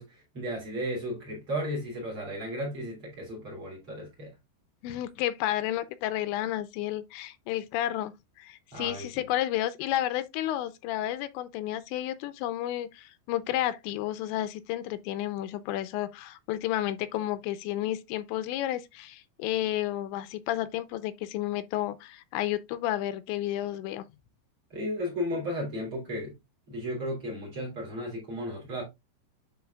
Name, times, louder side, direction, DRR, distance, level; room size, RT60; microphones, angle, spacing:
voice 1, 0.0-4.3 8.7-9.1 24.7-26.3 26.7-28.9, equal, 35° right, 2.8 m, -34 dB
voice 2, 4.8-8.1 8.4-24.1, left 13 dB, 85° left, 2.9 m, -31 dB
10.5 x 4.3 x 2.3 m
omnidirectional pair, 5.1 m